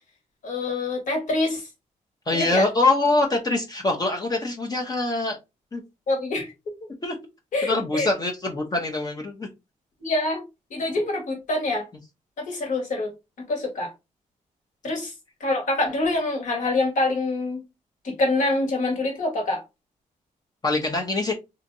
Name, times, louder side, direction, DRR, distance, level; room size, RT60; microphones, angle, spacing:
voice 1, 0.4-1.7 2.3-2.7 6.1-6.5 7.5-8.1 10.0-10.4 10.7-11.9 12.4-13.1 13.4-13.9 14.8-15.1 15.4-17.6 18.0-19.6, left 2 dB, 65° left, 1.4 m, -25 dB
voice 2, 2.3-5.4 5.7-5.8 7.0-7.2 7.6-9.5 20.6-21.3, left 2 dB, 25° left, 0.6 m, -24 dB
2.8 x 2.6 x 2.6 m
cardioid pair, 90°, 14 cm